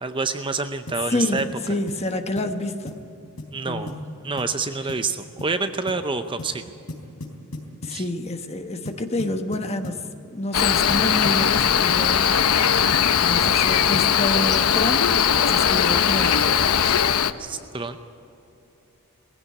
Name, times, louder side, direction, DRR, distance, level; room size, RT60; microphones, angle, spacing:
voice 1, 0.0-1.4 3.5-3.9 4.2-6.6 7.9-8.0 17.4-18.0, right 4 dB, 20° right, 9 dB, 0.6 m, -27 dB
sound 1, 0.9-1.1 1.4-1.6 1.9-2.1 2.4-2.5 2.9-3.1 3.4-3.6 3.9-4.0 4.4-4.6 4.9-5.1 5.4-5.6 5.9-6.0 6.4-6.6 6.9-8.0 8.9-10.1 10.9-12.1 12.9-14.2, left 1 dB, 70° left, 4.1 m, -37 dB
voice 2, 1.1-2.9 3.7-4.1 7.8-12.3 13.2-15.1 15.4-16.6, left 1 dB, 30° left, 7 dB, 1.2 m, -28 dB
Cricket, 10.5-17.3, left 8 dB, 90° left, 0.8 m, -19 dB
19.5 x 16.0 x 9.6 m, 2.8 s
head